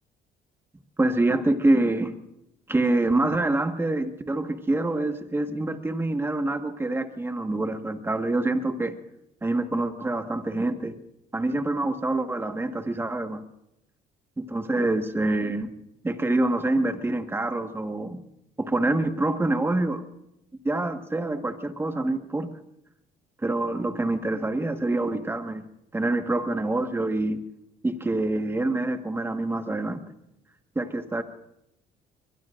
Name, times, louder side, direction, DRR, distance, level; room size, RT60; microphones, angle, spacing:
voice 1, 1.0-2.2 2.7-9.0 9.4-10.9 11.3-13.4 14.4-15.7 16.0-18.2 18.6-20.1 20.6-22.5 23.4-25.7 25.9-27.4 27.8-30.0 30.7-31.2, right 2 dB, 15° right, 1.5 m, -26 dB
23.0 x 23.0 x 2.5 m
cardioid pair, 110°, 17 cm